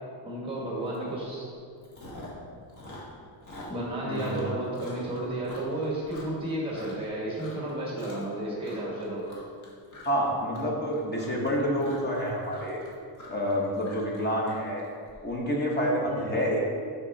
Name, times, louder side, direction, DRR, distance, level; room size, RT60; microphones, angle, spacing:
voice 1, 0.2-1.5 3.7-9.2 16.2-16.4, right 1 dB, 10° right, -5 dB, 1.7 m, -32 dB
Chewing mastication, 0.9-1.2 1.5-2.4 2.7-7.1 7.3-7.7 8.0-8.4 8.6-15.1, left 1 dB, 40° left, 1.5 m, -46 dB
voice 2, 4.0-4.4 10.0-12.8 13.3-14.8 15.2-16.6, equal, 20° left, -2 dB, 1.2 m, -28 dB
6.1 x 6.1 x 4.1 m, 2.2 s
cardioid pair, 150°, 44 cm